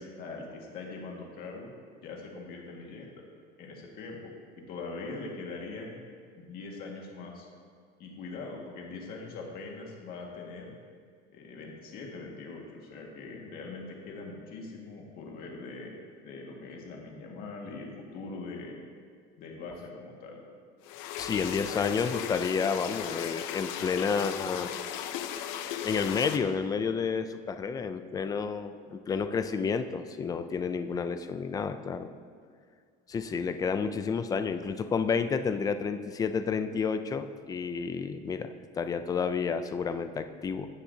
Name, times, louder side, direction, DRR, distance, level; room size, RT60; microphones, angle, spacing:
voice 1, 0.0-1.7 2.0-3.2 3.6-6.0 6.4-7.5 8.0-10.7 11.3-15.9 16.2-18.8 19.4-20.4, left 3 dB, 50° left, 0 dB, 1.8 m, -42 dB
sound 1, 20.8-26.4, left 10 dB, 85° left, 0.6 m, -36 dB
voice 2, 21.2-24.7 25.8-32.1 33.1-40.7, left 5 dB, 20° left, 9 dB, 0.3 m, -30 dB
16.0 x 7.2 x 2.8 m, 2.1 s
cardioid pair, 160°, 19 cm